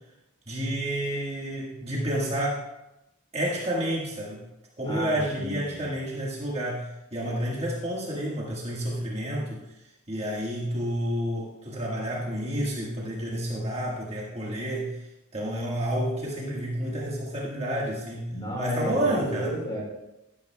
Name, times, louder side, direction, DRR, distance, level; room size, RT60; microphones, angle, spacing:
voice 1, 0.5-2.7 3.3-4.4 4.8-9.6 10.1-15.1 15.3-18.3 18.6-19.5, right 1 dB, 30° right, -4 dB, 1.6 m, -30 dB
voice 2, 4.8-5.9 18.3-19.8, equal, 20° left, -2 dB, 3.6 m, -33 dB
13.0 x 11.5 x 2.2 m, 0.93 s
head